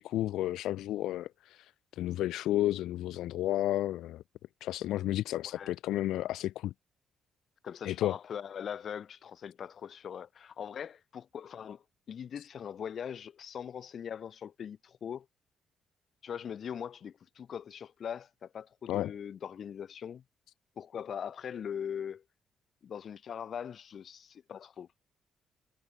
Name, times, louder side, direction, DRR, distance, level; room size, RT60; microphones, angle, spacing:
voice 1, 0.0-4.2 4.6-6.7 7.8-8.2 18.9-19.1, left 14 dB, 85° left, 1.8 m, -32 dB
voice 2, 7.6-15.3 16.2-20.2 20.8-22.2 22.8-24.9, left 8 dB, 55° left, 4.5 m, -41 dB
cardioid pair, 90°, 0 cm